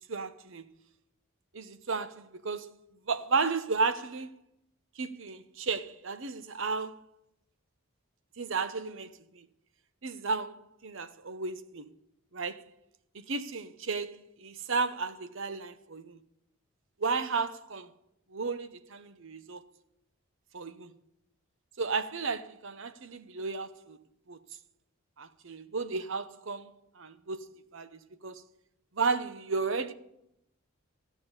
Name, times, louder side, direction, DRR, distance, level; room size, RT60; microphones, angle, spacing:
voice 1, 0.1-0.7 1.5-2.8 3.1-4.3 5.0-7.0 8.4-9.4 10.0-11.9 12.3-12.6 13.1-16.2 17.0-17.9 18.3-19.6 20.5-20.9 21.8-24.0 24.3-24.4 25.2-28.4 28.9-29.9, right 4 dB, 60° right, 0.8 m, -33 dB
14.0 x 7.2 x 9.7 m
head